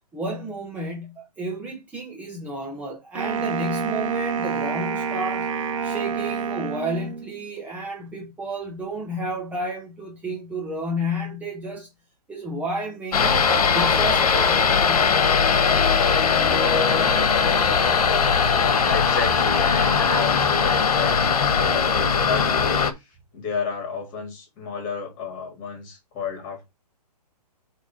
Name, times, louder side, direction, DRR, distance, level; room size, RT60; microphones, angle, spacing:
voice 1, 0.1-5.5 5.8-11.9 12.3-13.5 13.7-15.1, right 1 dB, 5° right, 1.1 m, -31 dB
Wind instrument woodwind instrument, 3.2-7.4, right 6 dB, 50° right, 1.7 m, -28 dB
Wind Arid Tempest, 13.1-22.9, left 6 dB, 65° left, 1.5 m, -20 dB
voice 2, 18.6-23.1 23.3-26.6, left 5 dB, 30° left, 3.9 m, -31 dB
8.4 x 3.7 x 4.9 m
hypercardioid pair, 155°, 21 cm